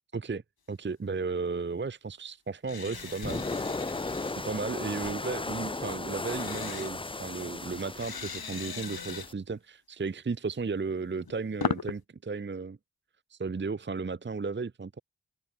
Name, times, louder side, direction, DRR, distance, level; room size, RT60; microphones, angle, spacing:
voice 1, 0.7-3.4 4.3-12.8 13.3-15.0, right 4 dB, 30° right, 0.6 m, -34 dB
sound 1, 2.6-4.3 6.2-6.9 8.0-9.3 11.0-11.9, left 6 dB, 75° left, 1.1 m, -37 dB
sound 2, 2.9-9.3, left 3 dB, 15° left, 0.4 m, -36 dB
open air
wide cardioid pair, 50°, 37 cm